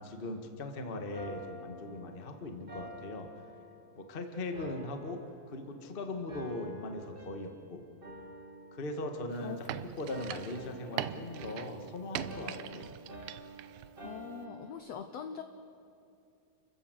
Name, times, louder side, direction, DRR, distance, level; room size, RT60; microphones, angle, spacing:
voice 1, 0.0-3.3 3.9-5.2 5.5-7.8 8.7-12.9, left 2 dB, 30° left, 5 dB, 1.0 m, -39 dB
sound 1, 1.1-4.1 4.5-5.9 6.3-7.7 8.0-9.7 10.1-14.8, right 1 dB, 20° right, 1.5 m, -49 dB
sound 2, 9.3-13.9 14.1-14.2, right 12 dB, 80° right, 2.4 m, -41 dB
voice 2, 14.0-15.4, left 7 dB, 75° left, 7 dB, 1.5 m, -42 dB
29.5 x 15.0 x 8.2 m, 2.5 s
omnidirectional pair, 4.1 m